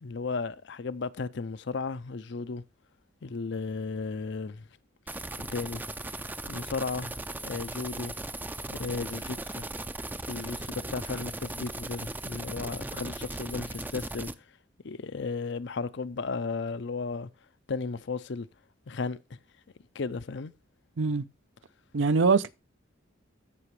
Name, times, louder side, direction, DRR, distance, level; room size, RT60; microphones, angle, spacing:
voice 1, 0.0-2.6 3.2-4.7 5.4-5.8 6.5-7.2 7.4-8.1 8.7-9.7 10.3-14.3 14.8-17.3 17.7-18.5 18.9-19.2 19.9-20.5, left 4 dB, 65° left, 0.6 m, -34 dB
sound 1, 5.1-14.3, right 2 dB, 10° right, 0.4 m, -38 dB
voice 2, 21.9-22.5, right 4 dB, 75° right, 0.6 m, -23 dB
15.5 x 5.9 x 3.2 m
head